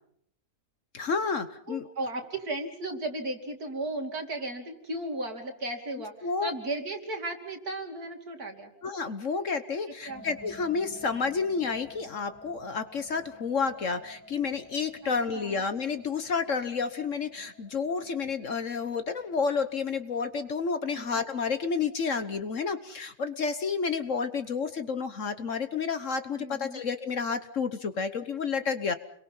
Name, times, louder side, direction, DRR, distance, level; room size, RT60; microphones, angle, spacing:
voice 1, 0.9-1.9 6.2-6.5 8.8-28.9, left 5 dB, 50° left, 10 dB, 1.4 m, -30 dB
voice 2, 1.7-6.1 6.4-8.7 10.0-10.2 15.0-15.6 20.9-21.2 26.4-26.8, right 2 dB, 60° right, 3 dB, 3.4 m, -35 dB
sound 1, 10.1-21.8, equal, 5° left, 6.5 m, -52 dB
29.5 x 23.0 x 5.6 m, 0.69 s
omnidirectional pair, 1.8 m